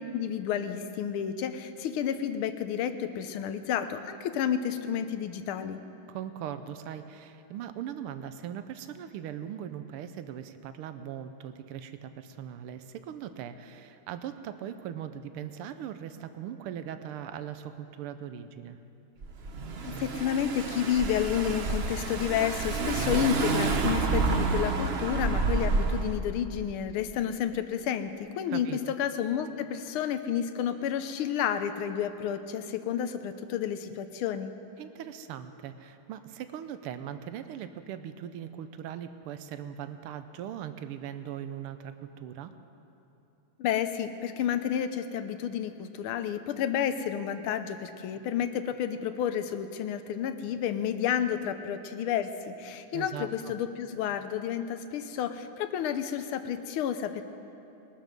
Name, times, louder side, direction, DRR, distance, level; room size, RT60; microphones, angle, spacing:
voice 1, 0.1-5.8 19.8-34.5 43.6-57.2, left 9 dB, 80° left, 10 dB, 1.6 m, -30 dB
voice 2, 6.1-18.8 28.5-28.9 34.8-42.5 52.9-53.5, right 9 dB, 90° right, 10 dB, 1.6 m, -40 dB
Car / Engine, 19.2-26.1, right 3 dB, 70° right, 0.6 m, -29 dB
20.5 x 12.5 x 5.2 m, 2.9 s
omnidirectional pair, 2.4 m